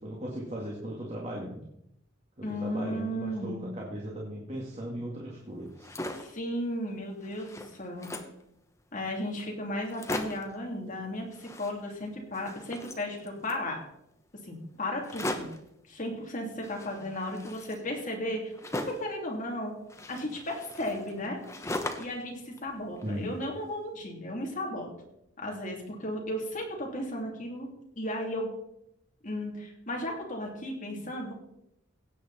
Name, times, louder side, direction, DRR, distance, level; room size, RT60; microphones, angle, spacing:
voice 1, 0.0-1.6 2.4-5.9 23.0-23.3, equal, 30° right, -3 dB, 1.9 m, -37 dB
voice 2, 2.4-3.6 6.1-8.1 8.9-13.8 14.4-15.5 15.9-18.5 18.9-19.7 20.1-21.4 22.0-24.9 25.4-27.7 27.9-28.5 29.2-31.3, left 1 dB, 40° left, 0 dB, 2.8 m, -35 dB
sound 1, 5.6-6.4 6.9-7.0 7.2-8.4 9.1-9.2 9.4-9.5 9.8-10.6 11.3-12.1 12.3-13.6 15.0-15.7 16.6-19.1 19.9-22.2 22.6-23.5, left 1 dB, 15° left, 1.0 m, -39 dB
16.5 x 8.4 x 4.2 m, 0.80 s
head